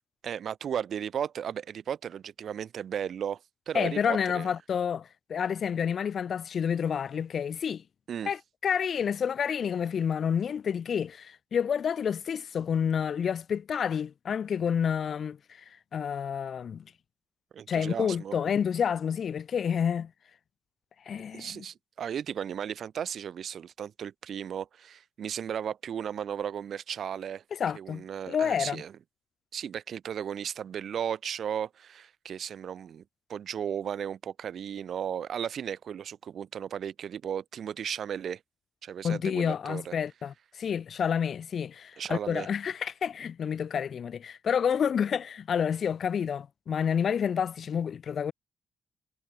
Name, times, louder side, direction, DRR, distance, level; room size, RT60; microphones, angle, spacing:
voice 1, 0.2-3.4 3.7-4.5 8.1-8.3 17.5-18.4 21.3-27.4 27.7-28.9 29.5-33.0 33.3-38.4 38.8-39.9 42.0-42.5, right 8 dB, 65° right, 1.8 m, -35 dB
voice 2, 3.7-7.8 8.2-15.6 15.9-16.8 17.7-20.1 21.0-21.6 27.5-28.8 39.0-48.3, left 7 dB, 60° left, 1.6 m, -29 dB
cardioid pair, 75°, 0 cm